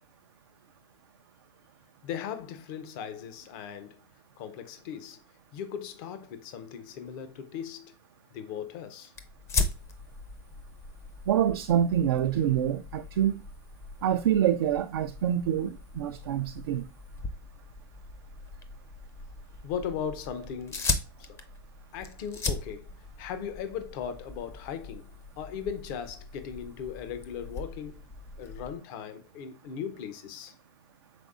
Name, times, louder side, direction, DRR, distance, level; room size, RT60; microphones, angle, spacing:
voice 1, 2.0-4.0 4.4-5.2 5.5-7.9 8.3-9.1 19.6-20.9 21.2-21.4 21.9-22.9 23.2-25.1 25.4-28.0 28.4-30.5, left 8 dB, 60° left, 0.7 m, -38 dB
sound 1, 9.1-28.8, left 4 dB, 20° left, 0.5 m, -38 dB
voice 2, 11.3-13.4 14.0-16.9, right 10 dB, 80° right, 0.4 m, -26 dB
5.1 x 3.5 x 2.4 m
hypercardioid pair, 110°, 13 cm